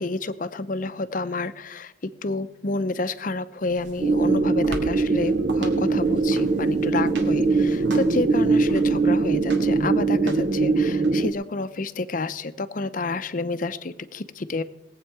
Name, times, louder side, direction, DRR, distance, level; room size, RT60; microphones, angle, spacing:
voice 1, 0.0-1.9 2.2-14.6, left 3 dB, 45° left, 13 dB, 0.6 m, -29 dB
sound 1, 3.6-11.1, right 2 dB, 75° right, 2.1 m, -40 dB
sound 2, 4.0-11.3, right 3 dB, 45° right, 0.5 m, -21 dB
19.5 x 8.2 x 4.7 m, 0.98 s
head